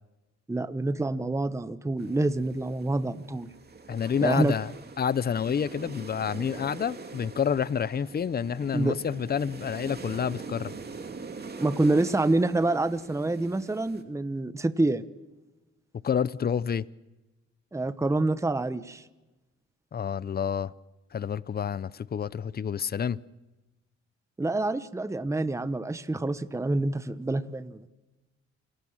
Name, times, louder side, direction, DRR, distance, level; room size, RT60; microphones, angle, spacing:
voice 1, 0.5-3.5 4.2-4.6 8.7-9.0 11.6-15.1 17.7-19.0 24.4-27.9, right 2 dB, 10° right, 1.0 m, -27 dB
sound 1, 2.0-14.0, right 4 dB, 30° right, 2.7 m, -43 dB
voice 2, 3.9-4.7 5.0-10.7 16.0-16.9 19.9-20.7 21.1-23.2, left 7 dB, 30° left, 0.7 m, -28 dB
28.5 x 18.5 x 7.4 m
cardioid pair, 90°, 30 cm